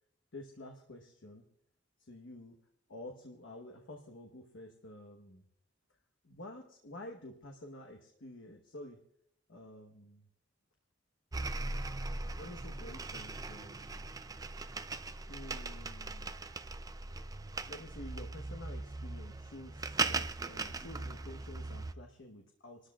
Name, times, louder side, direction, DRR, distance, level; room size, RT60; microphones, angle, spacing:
voice 1, 0.3-1.5 2.0-2.6 2.9-5.4 6.2-9.0 9.5-10.3 12.4-13.9 15.3-16.4 17.6-22.9, left 1 dB, 80° left, 3 dB, 1.1 m, -50 dB
sound 1, 11.3-21.9, right 3 dB, 20° right, 0.4 m, -39 dB
29.0 x 13.0 x 2.4 m, 0.73 s
head